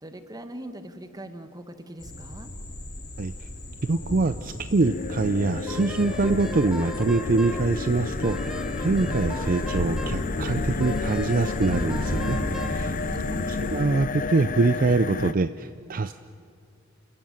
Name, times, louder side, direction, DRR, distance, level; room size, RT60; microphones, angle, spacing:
voice 1, 0.0-2.5 13.0-13.6, right 1 dB, 20° right, 9 dB, 1.3 m, -41 dB
sound 1, 2.0-13.8, equal, 60° left, 5.5 m, -34 dB
voice 2, 3.9-13.0 13.5-16.1, right 3 dB, 45° right, 12 dB, 0.5 m, -24 dB
sound 2, 4.8-15.3, left 4 dB, 40° left, 0.5 m, -31 dB
Wind instrument woodwind instrument, 5.7-7.7 8.2-10.3 10.8-12.8, right 1 dB, 5° right, 1.4 m, -40 dB
29.5 x 14.0 x 9.0 m, 2.2 s
head